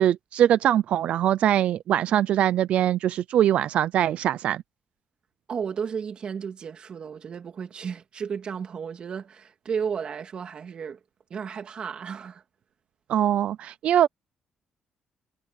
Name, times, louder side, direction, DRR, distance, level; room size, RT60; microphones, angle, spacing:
voice 1, 0.0-4.6 13.1-14.1, right 11 dB, 70° right, 0.5 m, -22 dB
voice 2, 5.5-11.0 11.3-12.4, right 6 dB, 45° right, 3.0 m, -33 dB
cardioid pair, 115°, 2 cm